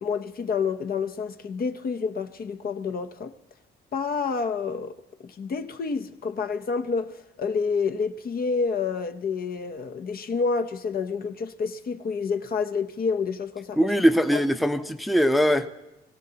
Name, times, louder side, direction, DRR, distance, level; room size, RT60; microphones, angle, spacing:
voice 1, 0.0-3.3 3.9-5.0 5.2-13.9 14.3-14.4, left 5 dB, 50° left, 0.8 m, -28 dB
voice 2, 13.8-15.7, equal, ahead, 0.7 m, -21 dB
21.5 x 16.0 x 2.9 m
cardioid pair, 90°, 20 cm